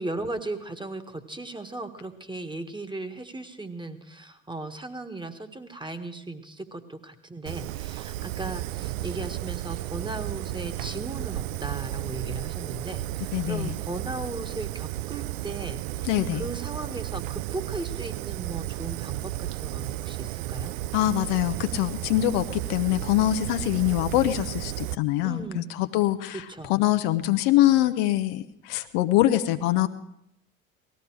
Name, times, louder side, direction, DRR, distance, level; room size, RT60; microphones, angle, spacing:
voice 1, 0.0-20.7 25.2-25.6 26.3-26.7, right 2 dB, 10° right, 7 dB, 1.5 m, -37 dB
Fire, 7.5-25.0, right 16 dB, 70° right, 0.5 m, -33 dB
voice 2, 13.3-13.7 16.1-16.4 20.9-29.9, left 14 dB, 65° left, 9 dB, 0.9 m, -24 dB
18.5 x 14.0 x 4.7 m, 0.78 s
figure-of-eight pair, 60°, 40 cm